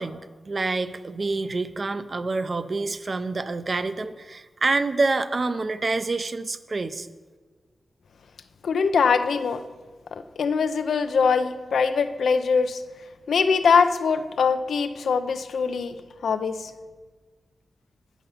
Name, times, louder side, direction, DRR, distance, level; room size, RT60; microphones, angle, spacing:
voice 1, 0.0-7.1, right 3 dB, 35° right, 12 dB, 0.4 m, -27 dB
voice 2, 8.6-9.6 10.1-12.8 13.3-16.0 16.2-16.7, left 5 dB, 90° left, 10 dB, 0.5 m, -22 dB
9.2 x 6.6 x 5.6 m, 1.4 s
wide cardioid pair, 155°, 0 cm